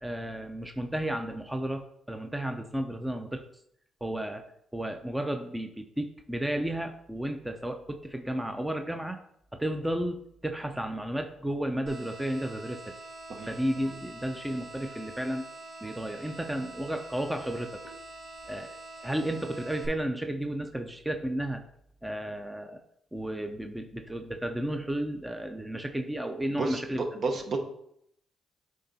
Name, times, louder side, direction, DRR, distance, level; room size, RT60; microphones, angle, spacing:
voice 1, 0.0-3.4 4.0-4.5 4.7-9.2 9.5-12.9 13.5-15.5 15.8-17.8 18.5-21.6 22.0-22.8 23.1-27.0, right 1 dB, 10° right, 5 dB, 0.6 m, -33 dB
sound 1, 11.9-19.9, right 2 dB, 75° right, 2.1 m, -45 dB
voice 2, 27.2-27.6, right 3 dB, 55° right, 4 dB, 1.2 m, -30 dB
8.6 x 3.7 x 4.1 m, 0.73 s
cardioid pair, 90°, 0 cm